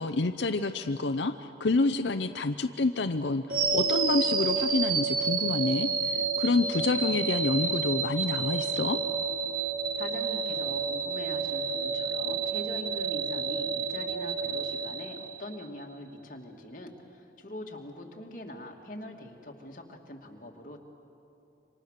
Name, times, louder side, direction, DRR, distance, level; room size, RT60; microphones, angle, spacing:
voice 1, 0.0-9.0, left 3 dB, 90° left, 9 dB, 0.7 m, -28 dB
sound 1, 3.5-15.6, right 5 dB, 50° right, 1.4 m, -30 dB
voice 2, 10.0-20.8, left 1 dB, 50° left, 1 dB, 2.5 m, -42 dB
27.5 x 25.5 x 6.6 m, 2.9 s
head